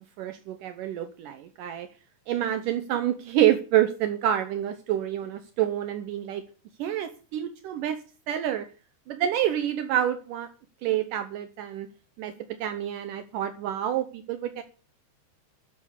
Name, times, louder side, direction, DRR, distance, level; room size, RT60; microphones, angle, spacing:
voice 1, 0.0-1.9 2.3-6.4 6.8-8.7 9.1-10.5 10.8-11.9 12.2-12.3 12.6-14.6, right 11 dB, 85° right, 1.8 m, -28 dB
13.0 x 7.2 x 9.7 m
omnidirectional pair, 5.1 m